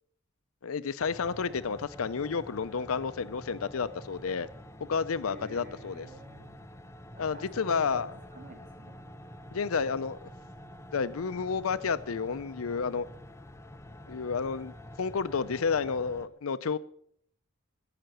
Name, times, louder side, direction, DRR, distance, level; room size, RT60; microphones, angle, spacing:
voice 1, 0.6-4.5 4.9-6.1 7.2-8.1 9.5-10.3 10.9-13.1 14.1-16.8, left 5 dB, 85° left, 0.6 m, -31 dB
sound 1, 1.0-16.3, equal, 15° left, 0.6 m, -48 dB
voice 2, 5.2-6.5 7.1-8.0 8.3-8.9, right 1 dB, 40° right, 2.8 m, -47 dB
17.0 x 5.9 x 6.7 m
head